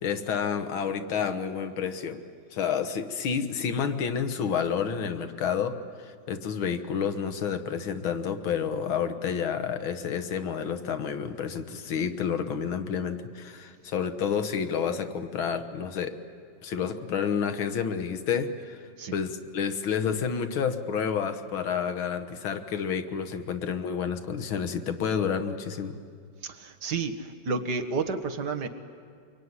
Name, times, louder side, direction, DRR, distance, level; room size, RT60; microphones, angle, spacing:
voice 1, 0.0-2.2 2.5-16.1 16.6-18.8 19.1-26.0, left 7 dB, 90° left, 9 dB, 2.1 m, -29 dB
voice 2, 26.4-28.7, right 4 dB, 60° right, 6 dB, 1.9 m, -31 dB
24.0 x 23.5 x 9.7 m, 2.2 s
omnidirectional pair, 2.2 m